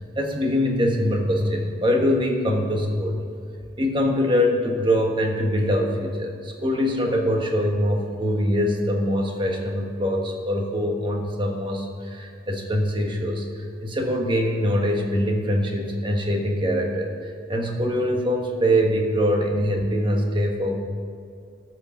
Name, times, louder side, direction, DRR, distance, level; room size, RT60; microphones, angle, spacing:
voice 1, 0.1-3.2 3.8-20.8, equal, 25° right, 2 dB, 1.3 m, -23 dB
14.0 x 6.0 x 6.9 m, 2.2 s
head